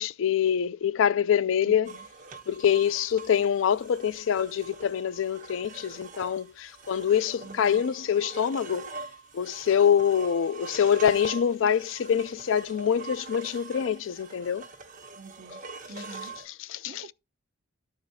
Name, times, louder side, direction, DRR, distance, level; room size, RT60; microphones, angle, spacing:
voice 1, 0.0-2.0 2.5-8.9 9.3-14.7 16.0-16.1 16.5-17.1, left 8 dB, 75° left, 0.4 m, -25 dB
voice 2, 1.7-2.0 7.4-7.8 15.2-15.6 15.9-16.4 16.9-17.1, right 3 dB, 60° right, 0.6 m, -46 dB
sound 1, 1.8-16.5, right 4 dB, 40° right, 1.2 m, -44 dB
13.5 x 4.9 x 2.7 m
head